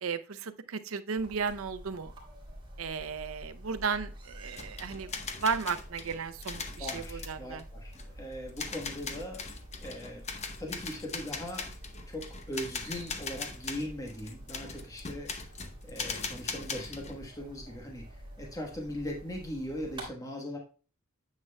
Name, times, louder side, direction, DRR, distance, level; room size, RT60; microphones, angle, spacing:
voice 1, 0.0-2.1 2.8-5.1 5.4-7.6, right 5 dB, 85° right, 11 dB, 0.6 m, -34 dB
sound 1, 1.2-20.1, right 1 dB, 25° right, 3.2 m, -48 dB
sound 2, 4.5-17.3, left 5 dB, 35° left, 0.8 m, -40 dB
voice 2, 6.8-9.4 9.8-10.2 10.6-11.6 12.1-15.3 15.9-18.1 18.4-20.6, equal, 15° left, 0 dB, 1.2 m, -39 dB
9.7 x 7.6 x 2.2 m, 0.37 s
head